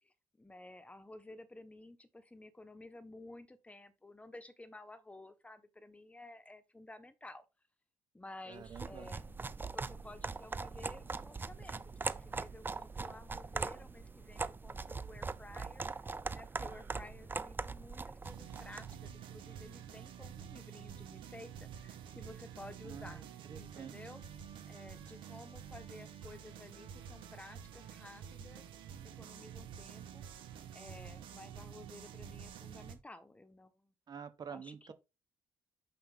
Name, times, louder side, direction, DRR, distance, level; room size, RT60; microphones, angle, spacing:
voice 1, 0.0-7.4 8.1-9.2 9.7-23.2 23.5-24.2 24.7-28.7 29.2-30.2 30.7-33.9 34.5-34.9, left 2 dB, 15° left, 1.2 m, -53 dB
voice 2, 8.5-9.1 22.8-24.0 34.1-34.9, right 7 dB, 50° right, 1.2 m, -48 dB
sound 1, 8.6-19.0, right 4 dB, 25° right, 0.6 m, -41 dB
sound 2, 18.2-32.9, right 8 dB, 75° right, 1.4 m, -49 dB
6.7 x 5.7 x 3.7 m
supercardioid pair, 65°, 9 cm